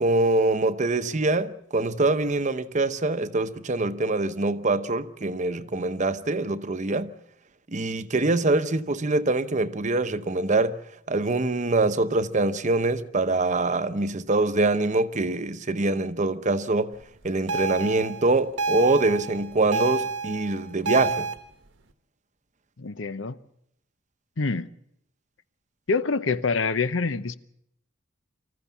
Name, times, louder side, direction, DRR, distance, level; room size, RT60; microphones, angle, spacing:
voice 1, 0.0-7.1 7.7-10.8 11.1-16.9 17.2-21.3, right 2 dB, 40° right, 0.8 m, -24 dB
sound 1, 17.5-21.4, right 4 dB, 70° right, 1.2 m, -29 dB
voice 2, 22.8-23.4 24.4-24.7 25.9-27.4, left 4 dB, 75° left, 0.8 m, -26 dB
25.0 x 14.5 x 7.2 m
head